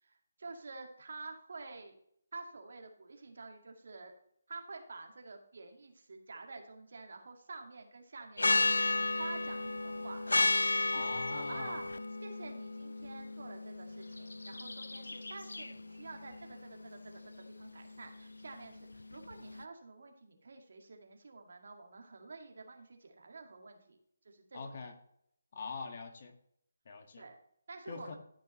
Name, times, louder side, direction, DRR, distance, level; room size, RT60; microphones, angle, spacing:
voice 1, 0.0-2.0 2.3-4.1 4.5-8.8 9.1-24.0 24.2-24.7 27.2-27.4 27.7-28.2, right 3 dB, 60° right, 3 dB, 2.0 m, -49 dB
sound 1, 8.4-19.6, left 2 dB, 80° left, 0.5 m, -34 dB
voice 2, 10.9-11.8 24.5-24.9 25.5-26.3 26.9-27.2 27.9-28.2, left 4 dB, 45° left, 4 dB, 1.8 m, -43 dB
14.5 x 6.0 x 3.2 m, 0.71 s
figure-of-eight pair, 155°, 0 cm